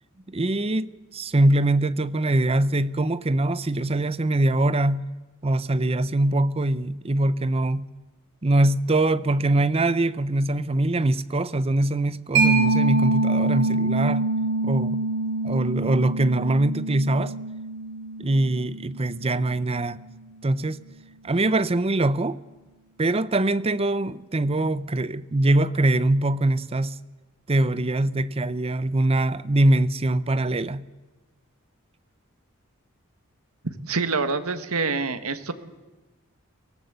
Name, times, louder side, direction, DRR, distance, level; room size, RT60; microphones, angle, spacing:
voice 1, 0.3-5.0 5.4-7.9 8.4-14.3 14.6-15.0 15.4-17.4 18.2-20.0 20.4-20.8 21.2-22.4 23.0-27.0 27.5-30.8, right 2 dB, 25° right, 0.7 m, -23 dB
Mallet percussion, 12.3-19.6, right 3 dB, 55° right, 6.3 m, -25 dB
voice 2, 33.6-35.5, right 4 dB, 80° right, 1.6 m, -26 dB
23.0 x 18.0 x 8.1 m
head